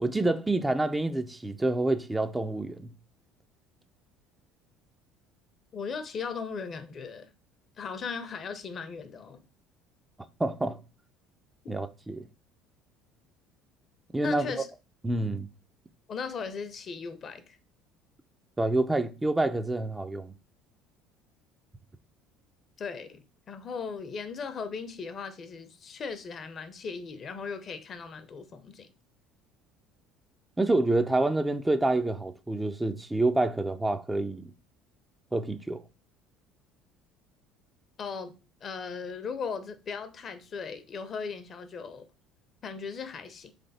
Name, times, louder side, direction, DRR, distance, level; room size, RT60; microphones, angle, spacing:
voice 1, 0.0-2.9 10.4-10.8 11.7-12.2 14.1-14.5 15.0-15.5 18.6-20.3 30.6-34.5 35.3-35.8, right 2 dB, 15° right, 0.5 m, -27 dB
voice 2, 5.7-7.3 7.8-9.4 14.2-14.7 16.1-17.6 22.8-28.9 38.0-38.3 38.6-42.1 42.6-43.5, left 5 dB, 45° left, 0.7 m, -37 dB
3.4 x 3.3 x 4.1 m
hypercardioid pair, 75°, 0 cm